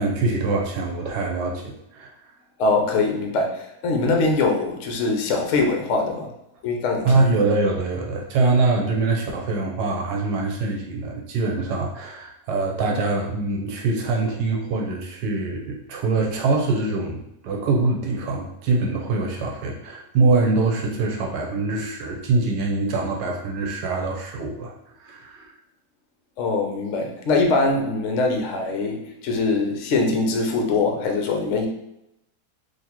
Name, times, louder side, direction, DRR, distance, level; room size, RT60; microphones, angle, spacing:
voice 1, 0.0-2.3 7.0-24.7 25.0-25.5, right 3 dB, 80° right, 0 dB, 1.2 m, -24 dB
voice 2, 2.6-6.3 6.6-7.1 26.4-31.7, left 3 dB, 65° left, 2 dB, 0.8 m, -22 dB
3.9 x 2.6 x 2.9 m, 0.82 s
omnidirectional pair, 1.8 m